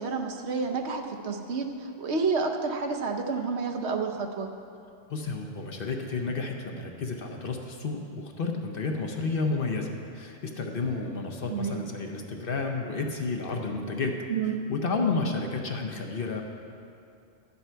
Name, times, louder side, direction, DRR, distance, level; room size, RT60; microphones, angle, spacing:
voice 1, 0.0-4.5 11.5-11.8 14.3-14.6, right 4 dB, 65° right, 4 dB, 1.0 m, -30 dB
voice 2, 5.1-14.2 14.7-16.4, left 3 dB, 55° left, 3 dB, 0.9 m, -31 dB
11.0 x 8.3 x 4.5 m, 2.5 s
omnidirectional pair, 1.3 m